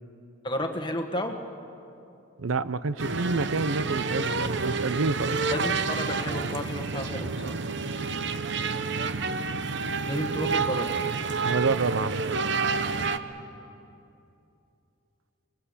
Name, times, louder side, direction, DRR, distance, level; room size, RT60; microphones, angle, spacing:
voice 1, 0.4-1.4 5.5-7.6 10.0-10.9, left 1 dB, 25° left, 4 dB, 1.6 m, -32 dB
voice 2, 2.4-5.4 11.4-12.4, right 4 dB, 90° right, 15 dB, 0.7 m, -28 dB
sound 1, 3.0-13.2, right 4 dB, 60° right, 0.9 m, -29 dB
25.5 x 21.0 x 8.5 m, 2.7 s
head